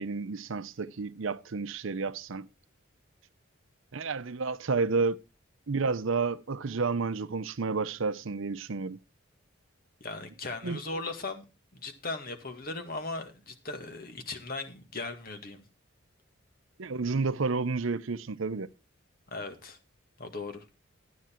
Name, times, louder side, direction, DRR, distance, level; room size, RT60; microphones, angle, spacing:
voice 1, 0.0-2.5 3.9-5.2 5.7-9.0 10.6-10.8 16.8-18.7, right 4 dB, 70° right, 0.6 m, -30 dB
voice 2, 10.0-11.4 11.8-15.6 19.3-19.8 20.2-20.6, left 3 dB, 45° left, 1.9 m, -38 dB
12.5 x 9.3 x 4.4 m
head